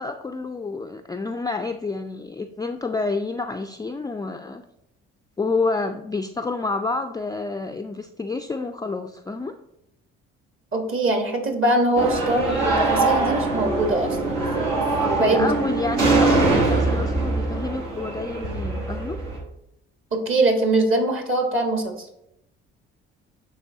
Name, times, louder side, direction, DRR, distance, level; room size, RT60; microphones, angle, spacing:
voice 1, 0.0-4.6 5.4-9.5 15.0-19.2, left 3 dB, 15° left, 5 dB, 0.3 m, -28 dB
voice 2, 10.7-14.8 15.1-15.5 20.1-22.1, right 2 dB, 40° right, 4 dB, 1.3 m, -22 dB
sound 1, 12.0-19.4, right 3 dB, 80° right, 1.4 m, -23 dB
10.0 x 3.4 x 2.7 m, 0.83 s
hypercardioid pair, 50°, 31 cm